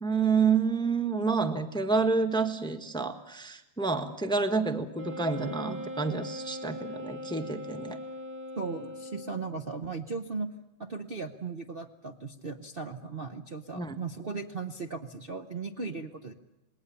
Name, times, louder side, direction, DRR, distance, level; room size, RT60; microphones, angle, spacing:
voice 1, 0.0-8.0 13.7-14.0, right 4 dB, 5° left, 7 dB, 1.1 m, -28 dB
Wind instrument woodwind instrument, 4.9-9.6, left 1 dB, 20° right, 2.4 m, -40 dB
voice 2, 8.6-10.5 10.8-16.3, right 4 dB, 40° right, 5 dB, 1.0 m, -37 dB
28.0 x 20.5 x 7.0 m, 0.94 s
omnidirectional pair, 2.1 m